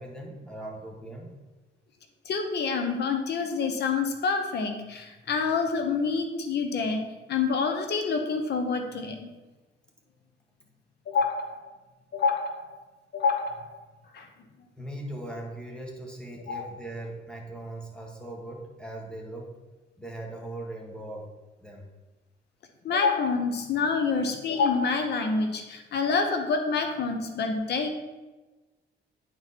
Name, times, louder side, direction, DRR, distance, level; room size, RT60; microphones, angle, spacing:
voice 1, 0.0-1.3 14.8-19.5 20.0-21.3 21.6-21.9, right 1 dB, 5° left, -1 dB, 1.5 m, -39 dB
voice 2, 2.2-9.3 11.1-11.6 12.1-12.7 13.1-13.7 14.1-14.3 16.5-16.7 22.8-27.9, left 4 dB, 60° left, 5 dB, 1.0 m, -27 dB
9.2 x 4.6 x 4.2 m, 1.2 s
cardioid pair, 130°, 19 cm